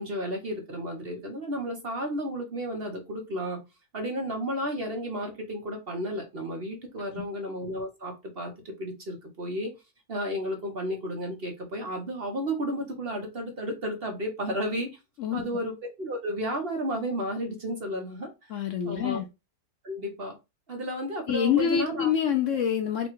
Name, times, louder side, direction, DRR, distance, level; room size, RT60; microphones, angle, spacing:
voice 1, 0.0-3.6 3.9-9.7 10.1-15.0 15.3-18.5 18.8-19.2 19.8-20.4 20.7-22.1, equal, 45° right, 1.0 m, -33 dB
voice 2, 18.5-19.3 21.3-23.1, left 8 dB, 65° left, 0.9 m, -26 dB
4.1 x 2.3 x 4.5 m
omnidirectional pair, 1.7 m